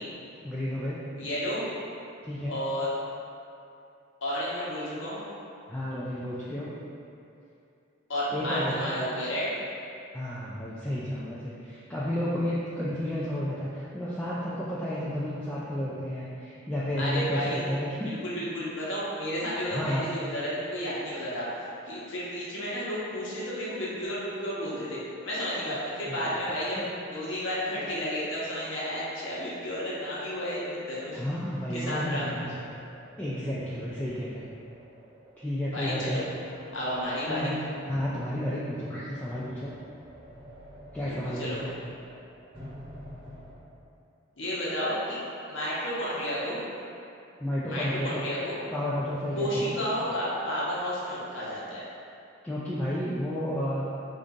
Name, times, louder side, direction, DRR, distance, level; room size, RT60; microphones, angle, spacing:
voice 1, 0.4-1.0 2.2-2.6 5.7-6.7 8.3-9.0 10.1-18.1 19.7-20.1 26.1-26.2 26.8-26.9 29.4-29.5 31.1-32.5 33.2-34.4 35.4-36.2 37.3-37.6 37.9-39.7 40.9-41.7 47.4-48.2 48.7-49.8 52.4-53.9, equal, 10° left, -9 dB, 0.3 m, -32 dB
voice 2, 1.2-1.6 2.5-2.9 4.2-5.2 8.1-9.5 17.0-17.7 18.0-26.8 27.1-31.2 31.7-32.4 35.7-36.3 36.7-37.6 41.0-41.6 44.4-45.2 45.5-46.6 47.7-48.5 49.3-51.8, equal, 65° left, -7 dB, 1.0 m, -32 dB
sound 1, 32.2-43.5, equal, 25° right, 1.0 m, -49 dB
3.8 x 2.5 x 3.6 m, 2.6 s
head